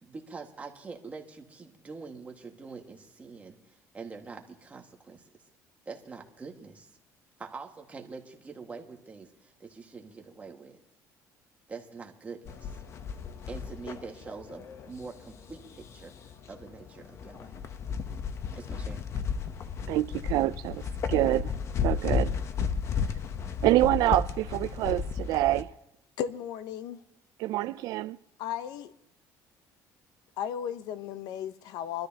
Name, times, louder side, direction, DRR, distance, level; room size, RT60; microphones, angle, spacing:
voice 1, 0.0-5.2 5.8-6.9 7.4-10.8 11.7-12.8 13.5-16.1 16.5-17.6 18.5-19.0, right 4 dB, 20° right, 1.8 m, -44 dB
sound 1, 12.5-25.6, left 6 dB, 45° left, 0.9 m, -34 dB
voice 2, 19.9-20.8 21.1-21.5 21.8-22.3 23.6-25.7 27.4-28.2, right 16 dB, 70° right, 0.5 m, -26 dB
voice 3, 26.2-27.0 28.4-28.9 30.4-32.1, left 9 dB, 75° left, 0.9 m, -35 dB
24.5 x 13.0 x 2.9 m
cardioid pair, 135°, 7 cm